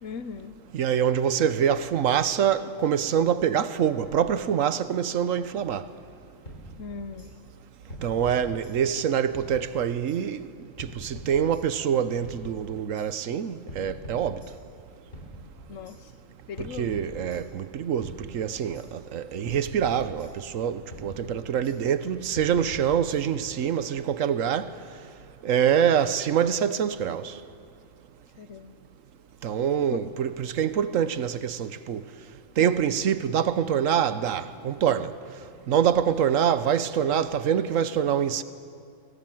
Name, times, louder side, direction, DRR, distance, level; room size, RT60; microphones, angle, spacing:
voice 1, 0.0-0.5 6.8-7.3 15.7-16.0 16.5-17.1 28.4-28.7 29.9-30.0, left 5 dB, 75° left, 1.2 m, -38 dB
voice 2, 0.7-5.8 8.0-10.4 10.8-14.4 16.6-24.7 25.4-27.2 29.4-32.0 32.6-35.1 35.7-38.4, right 8 dB, 75° right, 1.2 m, -25 dB
sound 1, 6.5-7.3 7.9-9.1 9.3-10.2 10.8-11.9 12.2-13.1 13.7-14.8 15.1-16.0 16.6-17.7 18.0-18.9 19.5-20.6 20.9-21.8 22.4-23.5, equal, 55° left, 4.0 m, -44 dB
23.0 x 17.5 x 7.7 m
omnidirectional pair, 1.4 m